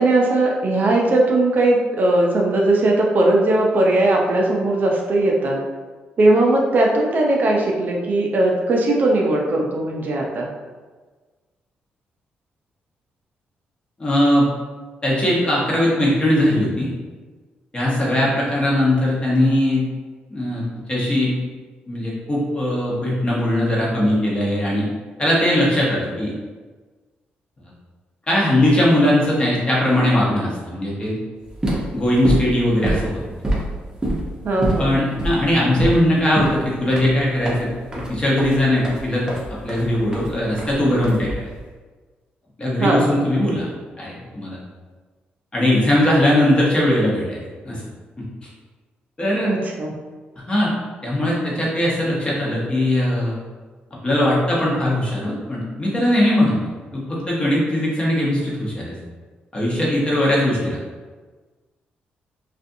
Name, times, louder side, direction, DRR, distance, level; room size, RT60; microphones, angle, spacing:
voice 1, 0.0-5.6 6.2-10.5 34.4-35.0 42.8-43.2 49.4-49.9, right 2 dB, 50° right, -1 dB, 0.5 m, -18 dB
voice 2, 14.0-14.5 15.0-16.9 17.7-19.8 20.3-20.6 20.9-21.3 21.9-24.9 25.2-26.3 28.3-31.2 31.9-33.2 34.8-37.7 37.9-39.3 39.6-41.3 42.6-43.7 44.0-44.6 45.5-47.8 49.2-49.5 50.5-50.7 51.0-53.4 54.0-56.5 56.9-58.9 59.5-60.8, left 1 dB, 25° left, -5 dB, 0.9 m, -19 dB
sound 1, 31.4-41.6, right 1 dB, 20° right, 0.7 m, -26 dB
2.5 x 2.4 x 2.6 m, 1.4 s
cardioid pair, 85°, 4 cm